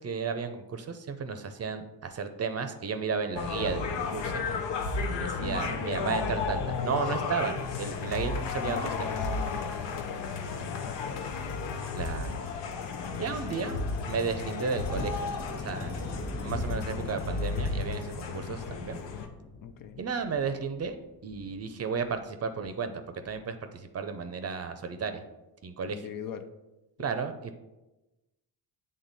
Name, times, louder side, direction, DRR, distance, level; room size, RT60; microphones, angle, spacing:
voice 1, 0.0-4.4 5.1-9.2 11.9-12.4 13.2-13.8 14.1-15.3 15.5-16.1 16.4-19.0 20.0-21.0 21.2-25.2 25.6-26.0 27.0-27.5, right 5 dB, 35° right, 8 dB, 0.6 m, -33 dB
sound 1, 3.4-19.3, left 4 dB, 85° left, 0.8 m, -33 dB
voice 2, 5.4-6.5 8.6-11.3 12.9-13.7 19.6-20.0 25.9-26.5, left 7 dB, 55° left, 8 dB, 0.6 m, -41 dB
sound 2, 14.9-21.6 22.0-22.2 22.6-22.7 23.2-23.4, left 1 dB, 35° left, 1.0 m, -43 dB
8.0 x 3.8 x 4.0 m, 1.0 s
cardioid pair, 110°, 41 cm